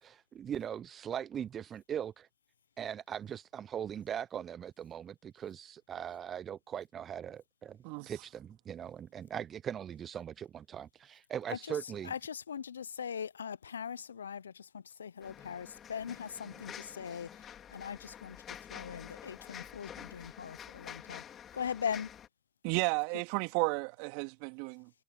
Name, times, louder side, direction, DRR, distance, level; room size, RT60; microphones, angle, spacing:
voice 1, 0.0-2.3 2.8-7.8 8.0-12.1, right 9 dB, 35° right, 0.7 m, -40 dB
voice 2, 12.0-21.2 21.5-22.1, left 7 dB, 80° left, 0.7 m, -40 dB
sound 1, 15.2-22.3, left 9 dB, 35° left, 5.2 m, -49 dB
voice 3, 22.6-24.9, right 34 dB, 55° right, 2.6 m, -33 dB
figure-of-eight pair, 80°, 0 cm